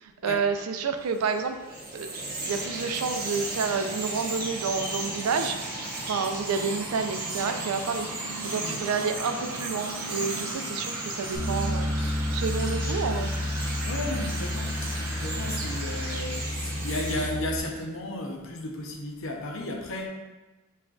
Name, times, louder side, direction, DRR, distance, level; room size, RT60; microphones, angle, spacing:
voice 1, 0.0-1.6 1.9-5.6 6.1-13.3, right 5 dB, 90° right, 7 dB, 0.4 m, -30 dB
Bird vocalization bird call bird song, 1.1-17.3, right 2 dB, 40° right, 0.7 m, -35 dB
sound 1, 1.3-16.3 16.7-16.8, right 1 dB, 10° right, 0.3 m, -44 dB
Bass guitar, 11.3-17.6, left 1 dB, 40° left, 1.5 m, -31 dB
voice 2, 13.8-20.1, left 1 dB, 65° left, 0 dB, 0.7 m, -34 dB
7.3 x 2.4 x 2.3 m, 1.1 s
head